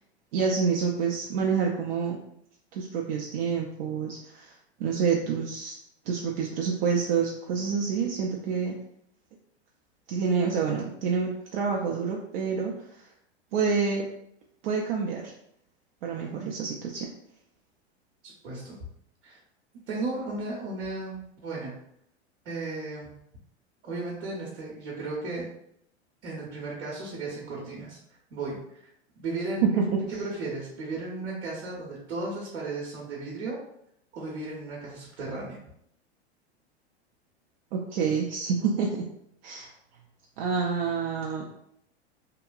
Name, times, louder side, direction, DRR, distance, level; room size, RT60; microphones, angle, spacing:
voice 1, 0.3-2.2 2.7-4.5 4.8-5.8 6.1-8.8 10.1-13.1 13.5-14.1 14.6-15.3 16.0-17.1 29.8-29.9 30.1-30.2 37.7-39.0 39.4-39.7 40.4-41.4, right 5 dB, 60° right, -1 dB, 0.5 m, -28 dB
voice 2, 18.2-18.8 19.2-19.4 19.9-21.7 22.4-23.1 23.8-25.5 26.2-28.0 28.3-28.8 29.2-29.8 30.1-33.6 34.1-35.6, right 3 dB, 75° right, -4 dB, 0.9 m, -35 dB
2.8 x 2.2 x 2.4 m, 0.74 s
hypercardioid pair, 100°, 33 cm